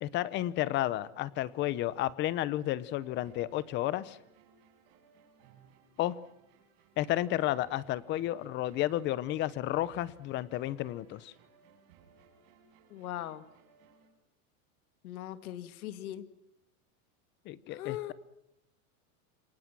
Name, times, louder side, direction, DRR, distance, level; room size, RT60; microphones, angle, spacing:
voice 1, 0.0-4.2 6.0-6.2 7.0-11.3 17.5-18.1, left 14 dB, 25° left, 18 dB, 0.8 m, -32 dB
sound 1, 3.0-14.1, right 6 dB, 50° right, 6.0 m, -63 dB
voice 2, 12.9-13.4 15.0-16.3 17.7-18.1, left 13 dB, 75° left, 12 dB, 2.2 m, -40 dB
28.0 x 25.0 x 6.2 m, 0.86 s
supercardioid pair, 165°, 43 cm